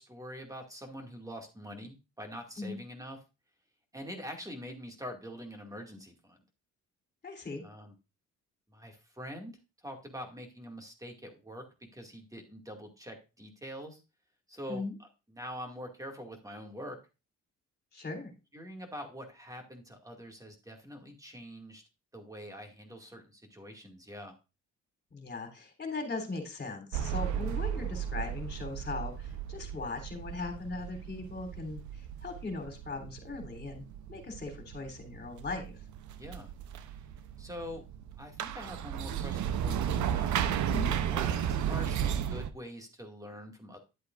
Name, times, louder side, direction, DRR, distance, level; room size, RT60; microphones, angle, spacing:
voice 1, 0.0-3.2 3.9-6.4 7.6-7.9 8.7-9.6 9.8-11.6 11.9-14.0 14.5-15.1 15.3-17.0 18.5-21.8 22.1-24.4 36.2-36.5 37.4-37.8 38.2-40.5 41.1-43.8, equal, 10° right, 3 dB, 2.2 m, -44 dB
voice 2, 7.2-7.6 14.7-14.9 17.9-18.3 25.1-35.7 40.7-41.0, left 3 dB, 35° left, 4 dB, 3.4 m, -39 dB
sound 1, 26.9-42.5, right 9 dB, 70° right, 0.8 m, -34 dB
11.0 x 8.0 x 2.5 m, 0.29 s
cardioid pair, 90°, 30 cm